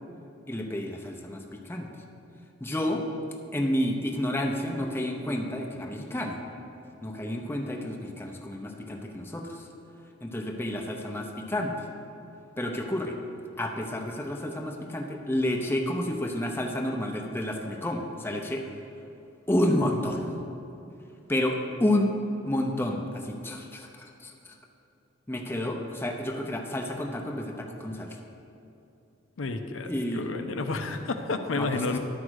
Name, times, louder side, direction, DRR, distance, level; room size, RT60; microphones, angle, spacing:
voice 1, 0.5-1.9 2.6-3.1 3.5-6.4 7.0-9.7 10.2-11.9 12.6-13.2 13.6-18.7 19.5-20.3 21.3-22.2 22.4-24.6 25.3-28.2 29.9-30.2 31.5-31.7, left 1 dB, 10° left, 1 dB, 0.7 m, -30 dB
voice 2, 29.4-32.0, left 3 dB, 80° left, 6 dB, 0.6 m, -31 dB
11.0 x 4.9 x 6.3 m, 2.8 s
head